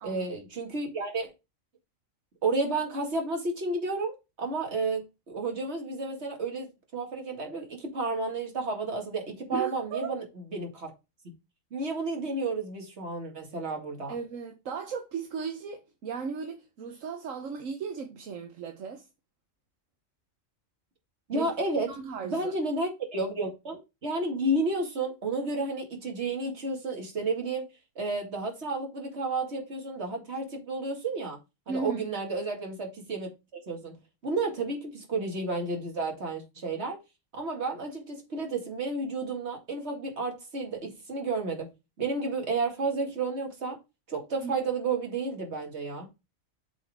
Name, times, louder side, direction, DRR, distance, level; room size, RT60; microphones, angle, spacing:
voice 1, 0.0-1.3 2.4-10.2 10.5-10.9 11.7-14.1 21.3-21.9 22.2-27.7 28.0-31.4 31.7-37.0 37.3-41.7 42.0-43.8 44.1-46.1, right 3 dB, 55° right, 2.3 m, -31 dB
voice 2, 9.5-10.1 14.1-19.1 21.3-21.5 21.9-22.5 31.7-32.1 44.4-44.5, right 6 dB, 75° right, 1.3 m, -36 dB
7.6 x 4.4 x 3.5 m
omnidirectional pair, 1.4 m